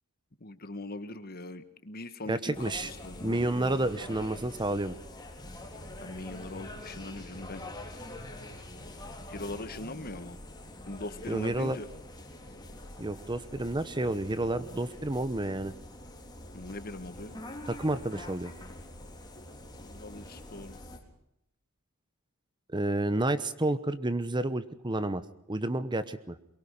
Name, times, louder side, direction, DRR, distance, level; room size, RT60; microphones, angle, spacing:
voice 1, 0.4-3.7 6.0-7.6 9.3-10.4 10.9-11.9 16.5-17.4 19.8-20.8, left 2 dB, 45° left, 11 dB, 1.6 m, -41 dB
voice 2, 2.3-2.9 3.2-4.9 11.3-11.8 13.0-15.7 17.7-18.5 22.7-25.2 25.5-26.4, right 1 dB, 20° right, 13 dB, 1.0 m, -30 dB
sound 1, 2.5-21.0, left 1 dB, 20° left, 3.8 m, -45 dB
23.0 x 23.0 x 5.6 m, 0.77 s
head